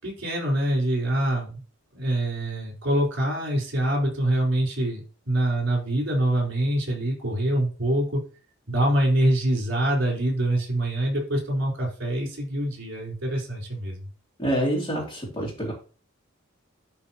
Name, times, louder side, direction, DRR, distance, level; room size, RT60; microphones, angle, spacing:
voice 1, 0.0-1.6 1.9-8.2 8.7-14.0, right 1 dB, 60° right, -1 dB, 4.4 m, -25 dB
voice 2, 14.4-15.7, right 1 dB, 25° left, -7 dB, 2.9 m, -27 dB
12.5 x 4.3 x 3.0 m, 0.37 s
head